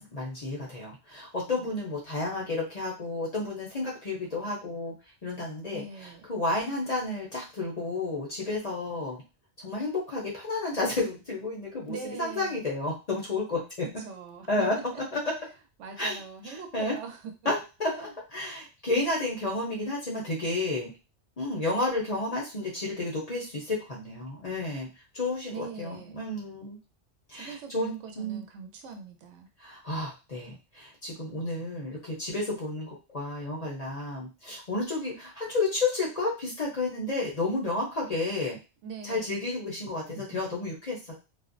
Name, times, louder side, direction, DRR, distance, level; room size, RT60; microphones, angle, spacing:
voice 1, 0.0-4.9 5.2-9.2 9.6-13.6 14.5-14.7 15.1-15.2 16.0-16.2 16.4-16.9 17.4-20.9 21.4-24.9 25.1-26.8 27.3-28.4 29.6-38.6 39.0-41.1, left 2 dB, 40° left, -3 dB, 0.6 m, -31 dB
voice 2, 5.7-6.3 11.9-12.6 14.0-14.7 15.8-17.3 18.0-18.1 25.5-26.3 27.3-29.5 30.5-30.6 38.8-39.4 40.1-40.4, right 5 dB, 80° right, 5 dB, 0.9 m, -42 dB
2.4 x 2.0 x 2.5 m, 0.29 s
omnidirectional pair, 1.2 m